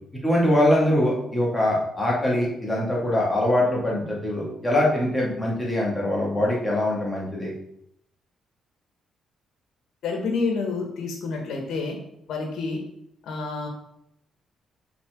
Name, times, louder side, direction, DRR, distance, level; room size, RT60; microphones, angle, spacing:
voice 1, 0.2-7.5, left 1 dB, 10° left, -4 dB, 2.4 m, -23 dB
voice 2, 10.0-12.0 12.3-12.8 13.2-13.7, left 4 dB, 70° left, 1 dB, 1.6 m, -28 dB
6.0 x 4.2 x 3.9 m, 0.75 s
cardioid pair, 90°, 0 cm